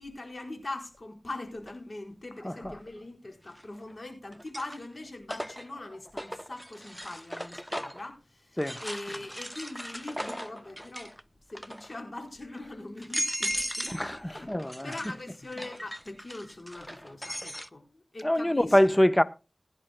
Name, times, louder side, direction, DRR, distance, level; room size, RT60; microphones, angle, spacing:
voice 1, 0.0-11.2 11.5-14.5 14.8-18.8, left 2 dB, 55° left, 4.6 m, -42 dB
sound 1, 1.7-1.8 3.5-3.9 4.3-8.1 8.6-11.2 11.5-12.0 12.5-12.6 13.0-14.1 14.3-17.7, equal, ahead, 0.6 m, -37 dB
voice 2, 2.4-2.8 8.6-8.8 13.9-14.9 18.2-19.2, equal, 20° left, 0.9 m, -25 dB
21.0 x 10.0 x 2.2 m
wide cardioid pair, 45°, 0 cm